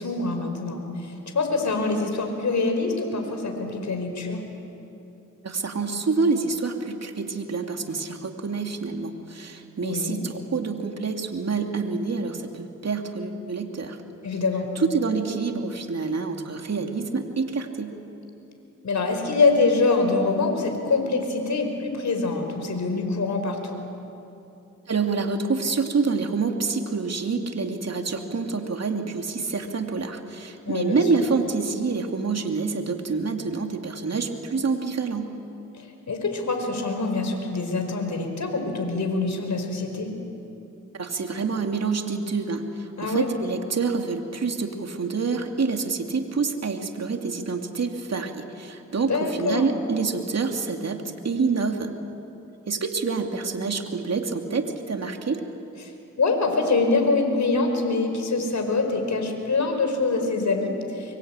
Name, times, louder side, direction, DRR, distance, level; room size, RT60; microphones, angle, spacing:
voice 1, 0.0-4.4 9.8-10.2 14.2-14.7 18.8-23.8 30.7-31.0 35.7-40.1 43.0-43.3 49.1-49.7 56.2-61.2, left 3 dB, 60° left, 4 dB, 5.2 m, -25 dB
voice 2, 5.4-14.0 14.8-18.0 24.9-35.3 40.9-51.9 52.7-55.4, right 4 dB, 50° right, 4 dB, 2.8 m, -27 dB
24.5 x 23.5 x 9.0 m, 2.8 s
cardioid pair, 55°, 33 cm